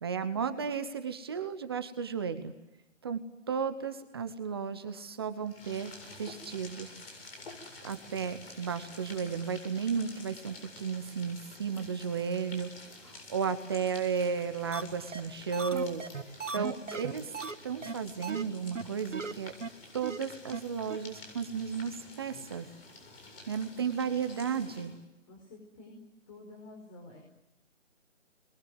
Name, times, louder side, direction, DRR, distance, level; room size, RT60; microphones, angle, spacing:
voice 1, 0.0-2.5 3.0-3.2 3.5-5.9 6.2-6.9 7.8-12.7 13.3-16.0 16.5-17.3 17.6-19.5 19.9-22.7 23.5-24.9, right 6 dB, 20° right, 9 dB, 0.9 m, -34 dB
sound 1, 5.4-25.0, left 2 dB, 50° left, 7.8 m, -50 dB
sound 2, 14.7-14.8 15.1-15.2 15.5-17.5 17.8-17.9 18.2-18.4 18.7-18.8 19.1-19.3 19.6-19.7 20.0-20.2 20.5-20.6 20.9-21.0, right 4 dB, 80° right, 1.9 m, -36 dB
voice 2, 25.3-26.0 26.3-27.2, left 2 dB, 25° left, 1 dB, 5.3 m, -50 dB
29.5 x 22.0 x 7.8 m, 0.98 s
figure-of-eight pair, 160°, 37 cm